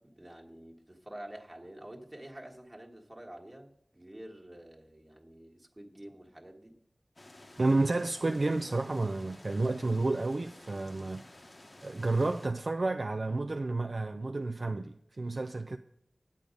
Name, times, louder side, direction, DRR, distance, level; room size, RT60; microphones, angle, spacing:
voice 1, 0.0-6.8, right 1 dB, 25° right, 1.5 m, -48 dB
sound 1, 7.2-12.5, left 1 dB, 45° left, 1.0 m, -53 dB
voice 2, 7.6-11.4 11.8-15.8, right 2 dB, 55° right, 0.4 m, -31 dB
9.3 x 8.6 x 5.2 m
wide cardioid pair, 70°, 0 cm